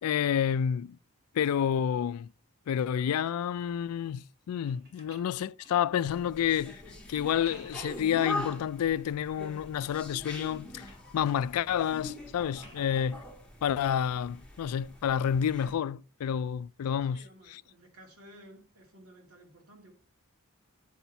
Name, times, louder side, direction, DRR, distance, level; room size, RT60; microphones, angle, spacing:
voice 1, 0.0-1.0 1.3-2.3 2.7-6.8 7.1-13.2 13.6-17.2 17.5-17.6, left 9 dB, 80° left, 0.3 m, -29 dB
sound 1, 4.6-6.3 7.2-8.0 8.5-9.1 9.6-10.1 10.4-11.1 12.6-13.2 14.9-15.0, equal, 50° right, 3.4 m, -56 dB
sound 2, 6.1-15.7, left 1 dB, 5° left, 1.6 m, -43 dB
voice 2, 17.1-19.9, right 1 dB, 75° right, 2.1 m, -54 dB
9.0 x 4.2 x 4.5 m
head